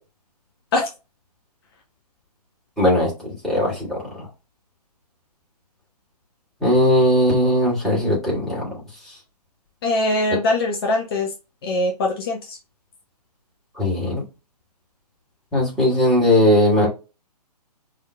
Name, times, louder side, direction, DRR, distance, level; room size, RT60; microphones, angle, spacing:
voice 1, 2.8-3.1 3.4-4.0 6.6-8.6 13.8-14.2 15.5-16.9, left 1 dB, ahead, -7 dB, 2.7 m, -18 dB
voice 2, 9.8-11.3 11.6-12.6, left 2 dB, 35° left, 1 dB, 1.0 m, -22 dB
5.4 x 3.5 x 2.3 m, 0.28 s
figure-of-eight pair, 130°, 21 cm